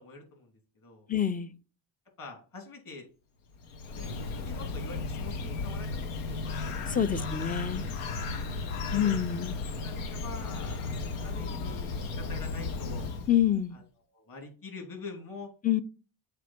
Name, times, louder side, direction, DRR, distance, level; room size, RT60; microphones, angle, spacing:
voice 1, 0.0-1.1 2.2-3.1 3.9-5.9 6.3-7.3 9.8-13.1 13.7-13.8 14.1-15.5, left 3 dB, 45° left, 2.9 m, -46 dB
voice 2, 1.1-1.5 6.9-7.9 8.9-9.6 13.3-13.8 15.6-15.8, left 10 dB, 20° left, 0.4 m, -27 dB
Bird, 3.5-13.6, left 3 dB, 85° left, 0.9 m, -35 dB
7.5 x 3.4 x 4.3 m
supercardioid pair, 80°, 48 cm